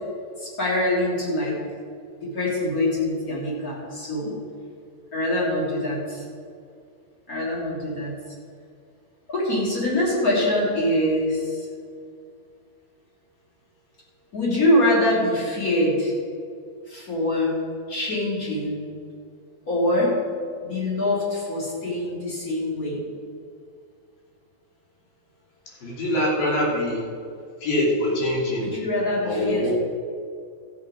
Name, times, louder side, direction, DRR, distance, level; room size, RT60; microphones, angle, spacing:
voice 1, 0.4-1.6 2.2-4.4 5.1-6.2 7.3-8.1 9.3-11.6 14.3-16.1 16.9-17.5 17.9-18.8 19.7-20.2 20.6-23.0 28.6-29.7, left 1 dB, 25° left, -5 dB, 2.9 m, -24 dB
voice 2, 25.8-27.0 27.6-28.7 29.2-29.7, left 1 dB, 75° left, -4 dB, 4.4 m, -23 dB
14.0 x 8.7 x 4.9 m, 2.3 s
omnidirectional pair, 4.1 m